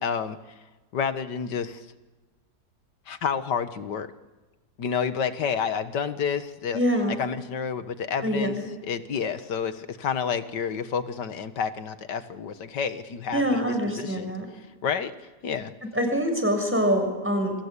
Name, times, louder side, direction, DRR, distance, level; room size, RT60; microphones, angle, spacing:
voice 1, 0.0-0.4 0.9-1.8 3.1-4.1 4.8-6.8 7.2-8.6 8.8-14.3 14.8-15.1 15.4-15.7, left 6 dB, 85° left, 11 dB, 2.0 m, -29 dB
voice 2, 6.7-7.2 8.2-8.7 13.3-14.4 15.9-17.5, equal, 5° right, 4 dB, 6.6 m, -25 dB
28.5 x 25.5 x 8.3 m, 1.2 s
omnidirectional pair, 1.8 m